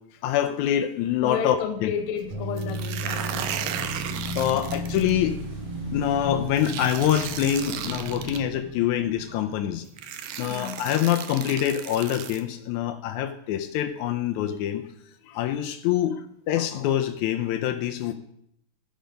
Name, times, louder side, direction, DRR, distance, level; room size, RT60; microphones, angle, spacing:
voice 1, 0.2-1.9 4.3-5.5 5.9-14.8 15.3-16.2 16.5-18.1, left 11 dB, 90° left, 1.7 m, -25 dB
voice 2, 1.2-4.0 4.5-4.7 5.8-5.9 9.3-9.5 10.5-10.9 15.2-15.7, left 8 dB, 70° left, 1.8 m, -33 dB
Motorcycle / Engine, 1.9-10.1, equal, 40° right, 3.0 m, -37 dB
Bass guitar, 2.3-8.6, right 2 dB, 65° right, 1.6 m, -38 dB
sound 1, 2.6-5.1 6.6-8.4 9.4-9.5 10.0-12.4, right 9 dB, 80° right, 1.7 m, -35 dB
15.0 x 5.1 x 5.2 m
omnidirectional pair, 4.1 m